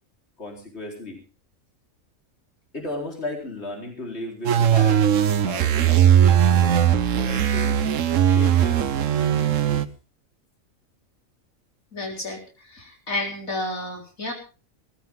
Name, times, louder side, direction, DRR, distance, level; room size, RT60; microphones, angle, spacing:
voice 1, 0.4-1.2 2.7-5.1 5.5-6.8 7.2-7.8 8.3-8.9 9.2-9.9, left 1 dB, 50° left, 0 dB, 4.5 m, -35 dB
sound 1, 4.5-9.9, right 9 dB, 70° right, 1.3 m, -19 dB
voice 2, 11.9-14.3, left 2 dB, 80° left, 0 dB, 4.7 m, -31 dB
19.0 x 15.5 x 3.7 m, 0.35 s
omnidirectional pair, 1.4 m